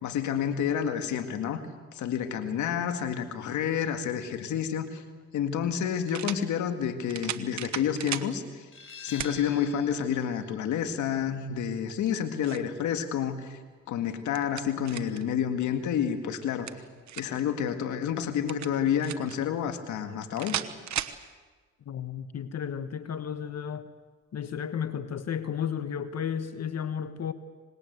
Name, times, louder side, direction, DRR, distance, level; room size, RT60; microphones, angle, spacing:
voice 1, 0.0-1.6 1.9-5.0 5.3-8.7 9.0-13.6 13.9-16.7 17.2-20.6, left 8 dB, 90° left, 8 dB, 2.1 m, -29 dB
sound 1, 4.8-4.9 6.1-6.4 7.1-8.3 9.2-9.4 9.9-10.0 11.9-12.7 14.0-15.2 16.4-17.4 18.5-19.4 20.4-21.2, right 10 dB, 70° right, 1.2 m, -36 dB
sound 2, 8.7-14.1, left 4 dB, 45° left, 4.0 m, -50 dB
voice 2, 21.9-23.9 24.3-27.3, left 8 dB, 60° left, 11 dB, 1.3 m, -33 dB
25.5 x 20.5 x 8.1 m, 1.4 s
cardioid pair, 65°, 29 cm